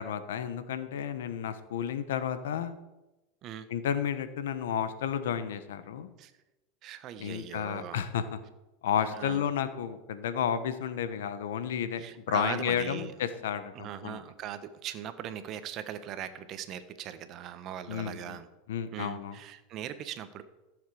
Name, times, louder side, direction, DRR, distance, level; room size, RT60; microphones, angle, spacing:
voice 1, 0.0-2.8 3.7-6.1 7.2-8.4 8.8-14.2 17.9-18.4 18.7-19.4, left 8 dB, 85° left, 11 dB, 1.0 m, -32 dB
voice 2, 6.8-8.0 9.1-9.4 12.0-13.1 13.7-18.5 18.9-20.4, right 10 dB, 45° right, 11 dB, 1.1 m, -40 dB
14.0 x 7.3 x 4.9 m, 1.0 s
supercardioid pair, 115°, 0 cm